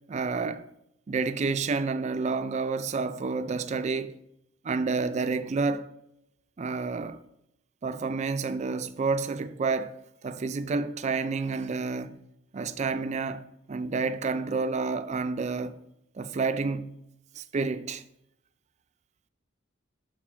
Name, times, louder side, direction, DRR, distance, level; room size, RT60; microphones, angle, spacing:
voice 1, 0.1-0.6 1.1-4.2 4.6-5.9 6.6-7.2 7.8-12.2 12.5-15.8 16.2-17.0 17.4-18.0, right 4 dB, 35° right, 0.3 m, -29 dB
6.1 x 4.0 x 6.0 m
head